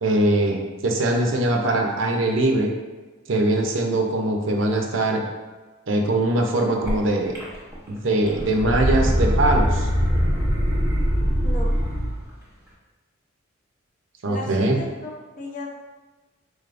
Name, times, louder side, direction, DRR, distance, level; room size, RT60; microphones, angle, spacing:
voice 1, 0.0-2.7 3.3-5.2 5.9-7.4 7.9-9.9 14.2-14.8, right 1 dB, 75° right, 2 dB, 0.5 m, -22 dB
sound 1, 6.9-7.0 7.3-7.9 8.2-12.2, equal, 10° right, 0.9 m, -22 dB
voice 2, 11.4-11.7 14.3-15.1 15.4-15.7, left 2 dB, 40° left, -1 dB, 0.6 m, -34 dB
4.0 x 3.3 x 2.5 m, 1.3 s
head